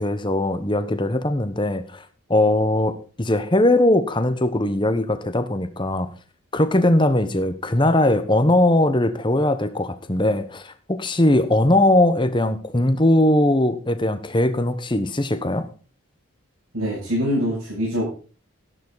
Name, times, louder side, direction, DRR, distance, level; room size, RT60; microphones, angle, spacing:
voice 1, 0.0-2.0 2.3-6.1 6.5-15.7, left 1 dB, 20° left, 10 dB, 1.1 m, -20 dB
voice 2, 16.7-18.1, equal, 85° right, -6 dB, 7.9 m, -24 dB
12.5 x 11.5 x 4.0 m, 0.38 s
head